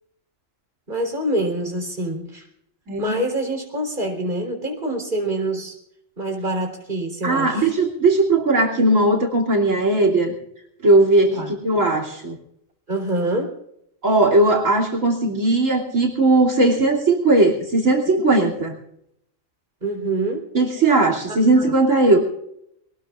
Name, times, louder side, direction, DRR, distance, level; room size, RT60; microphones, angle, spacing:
voice 1, 0.9-2.5 3.0-5.8 6.2-7.7 11.3-11.6 12.9-13.5 19.8-20.5 21.3-21.7, right 1 dB, 40° right, 2 dB, 4.0 m, -26 dB
voice 2, 2.9-3.2 7.2-10.3 10.8-12.4 14.0-18.7 20.5-22.2, right 2 dB, 75° right, 2 dB, 3.2 m, -18 dB
23.5 x 20.0 x 2.4 m, 0.74 s
omnidirectional pair, 1.4 m